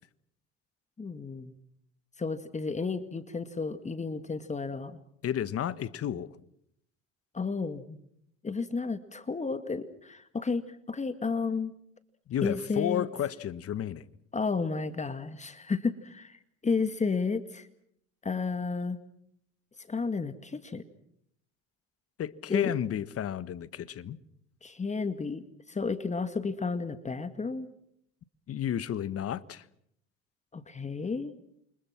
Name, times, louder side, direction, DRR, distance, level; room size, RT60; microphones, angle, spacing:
voice 1, 1.0-1.5 2.2-5.0 7.3-8.0 8.4-11.7 12.4-13.1 14.3-17.7 18.2-19.0 19.9-20.8 22.5-22.7 24.6-27.7 30.5-31.3, left 4 dB, 20° left, 2.0 m, -32 dB
voice 2, 5.2-6.3 12.3-14.1 22.2-24.2 28.5-29.6, left 10 dB, 45° left, 1.5 m, -32 dB
29.0 x 25.5 x 6.0 m
supercardioid pair, 90°, 33 cm